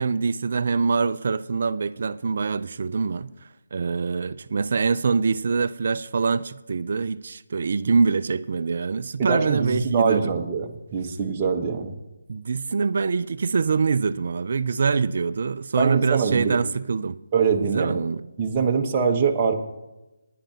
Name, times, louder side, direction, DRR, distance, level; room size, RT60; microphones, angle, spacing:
voice 1, 0.0-3.3 3.7-10.4 12.3-17.2 17.6-18.2, right 5 dB, 55° right, 0.4 m, -24 dB
voice 2, 9.2-11.9 15.8-16.6 17.3-18.0 18.4-19.5, right 5 dB, 30° right, 1.1 m, -23 dB
19.5 x 10.5 x 2.9 m
figure-of-eight pair, 150°, 0 cm